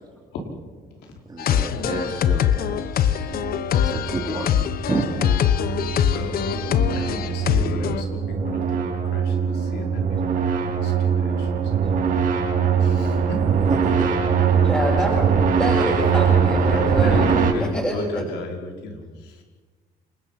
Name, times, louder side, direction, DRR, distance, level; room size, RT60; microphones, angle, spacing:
voice 1, 1.3-3.4 3.7-4.5 4.8-5.1 13.5-14.1, right 3 dB, 25° right, 1 dB, 3.1 m, -30 dB
sound 1, 1.4-8.0, left 9 dB, 60° left, 1.2 m, -23 dB
sound 2, 3.0-17.5, right 6 dB, 55° right, 6.8 m, -22 dB
voice 2, 6.9-12.2 12.8-13.4 16.7-19.4, left 2 dB, 85° left, 2 dB, 5.3 m, -33 dB
voice 3, 14.6-17.3 17.6-17.9, equal, 5° left, -2 dB, 6.6 m, -27 dB
28.5 x 20.5 x 6.0 m, 1.4 s
cardioid pair, 110°, 17 cm